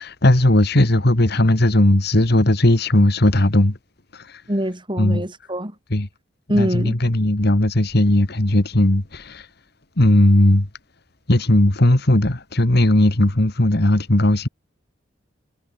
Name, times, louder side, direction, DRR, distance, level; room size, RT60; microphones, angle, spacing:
voice 1, 0.0-3.8 4.1-4.4 5.0-5.2 5.9-6.1 6.5-9.5 10.0-10.7 11.3-14.5, left 1 dB, 55° left, 2.0 m, -17 dB
voice 2, 4.5-5.7 6.5-6.9, equal, 25° right, 5.9 m, -23 dB
head